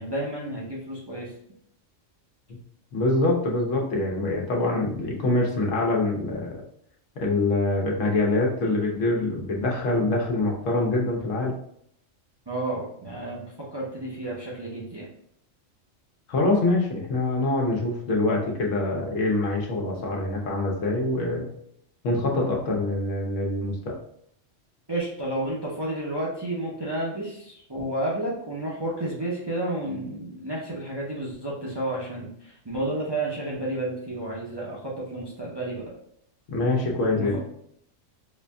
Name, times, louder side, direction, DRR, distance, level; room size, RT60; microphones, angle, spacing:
voice 1, 0.0-1.3 12.5-13.4 13.7-15.1 24.9-35.9 37.1-37.4, right 1 dB, 30° right, -5 dB, 0.5 m, -31 dB
voice 2, 2.9-6.5 7.2-11.5 16.3-21.5 22.0-23.9 36.5-37.4, left 2 dB, 75° left, -1 dB, 1.2 m, -25 dB
4.9 x 2.6 x 2.2 m, 0.69 s
omnidirectional pair, 1.3 m